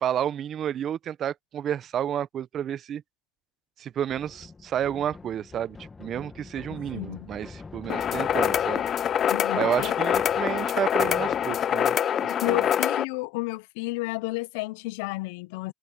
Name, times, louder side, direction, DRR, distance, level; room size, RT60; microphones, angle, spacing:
voice 1, 0.0-3.0 3.8-8.8 9.5-12.0 12.2-12.7, right 10 dB, 55° right, 1.1 m, -30 dB
sound 1, 4.1-11.8, left 4 dB, 25° left, 2.1 m, -46 dB
voice 2, 6.7-7.3 9.3-9.9 12.4-15.7, left 22 dB, 80° left, 0.7 m, -32 dB
sound 2, 7.9-13.0, left 9 dB, 50° left, 0.4 m, -25 dB
hypercardioid pair, 75°, 0 cm